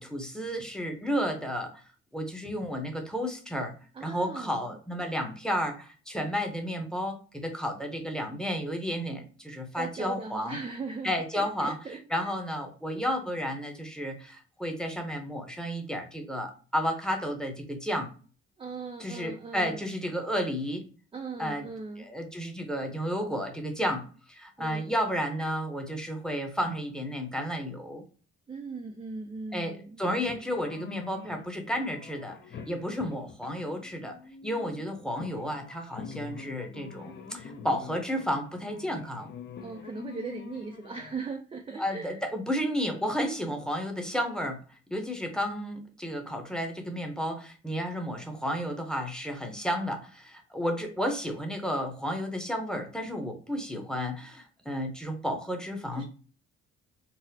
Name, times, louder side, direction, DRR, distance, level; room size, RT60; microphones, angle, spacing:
voice 1, 0.0-1.8 2.1-3.7 4.0-10.6 11.0-11.8 12.1-18.1 19.0-20.8 21.4-21.7 22.0-28.0 29.5-39.3 41.8-44.6 44.9-56.0, equal, ahead, 3 dB, 0.8 m, -32 dB
voice 2, 3.9-4.8 9.7-12.3 18.6-19.9 21.1-22.1 24.6-25.0 28.5-30.0 39.6-42.2 55.9-56.0, right 4 dB, 20° right, 4 dB, 0.4 m, -39 dB
sound 1, 30.2-41.1, left 6 dB, 35° left, 0.6 m, -46 dB
4.0 x 2.0 x 2.7 m, 0.39 s
cardioid pair, 90°, 30 cm